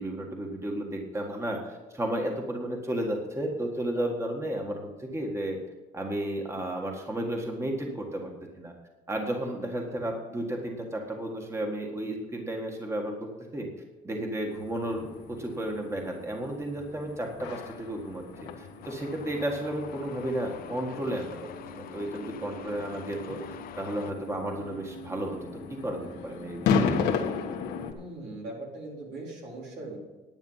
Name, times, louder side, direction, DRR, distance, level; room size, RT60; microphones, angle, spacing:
voice 1, 0.0-5.6 5.9-8.3 8.6-8.7 9.1-13.7 14.0-21.4 21.8-25.4 25.7-26.8, right 1 dB, 15° right, 1 dB, 1.7 m, -33 dB
sound 1, 14.5-27.9, left 5 dB, 80° left, 1.4 m, -35 dB
Truck, 18.8-24.1, left 10 dB, 60° left, 0.8 m, -45 dB
voice 2, 27.9-30.0, right 2 dB, 80° right, -3 dB, 4.1 m, -40 dB
11.0 x 8.8 x 5.7 m, 1.2 s
cardioid pair, 110°, 17 cm